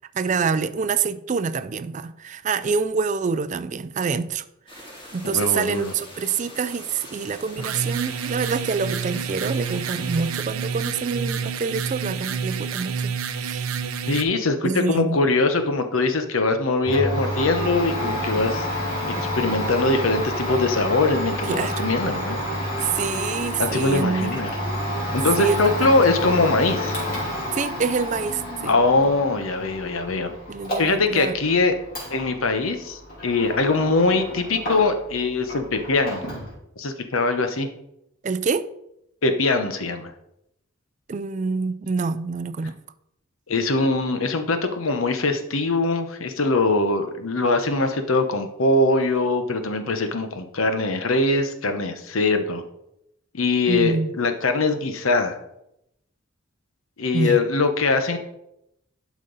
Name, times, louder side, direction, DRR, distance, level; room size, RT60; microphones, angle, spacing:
voice 1, 0.1-4.9 5.1-13.7 14.6-15.2 21.4-21.9 22.8-24.5 25.4-25.9 27.5-28.8 30.5-31.4 38.2-38.7 41.1-42.8 53.7-54.1 57.1-57.4, right 5 dB, 35° right, 0.3 m, -26 dB
sound 1, 4.7-10.4, left 1 dB, 25° left, 3.2 m, -43 dB
voice 2, 5.2-5.9 14.1-18.7 19.1-22.4 23.6-24.5 25.1-26.9 28.7-30.3 30.8-31.7 32.1-36.2 36.8-37.7 39.2-40.1 43.5-52.6 53.3-55.4 57.0-58.2, left 3 dB, 80° left, 0.9 m, -22 dB
sound 2, 7.6-14.2, right 6 dB, 90° right, 0.7 m, -29 dB
Domestic sounds home sounds, 16.8-35.2 35.4-36.5, equal, 45° left, 2.9 m, -29 dB
11.5 x 5.2 x 4.0 m
head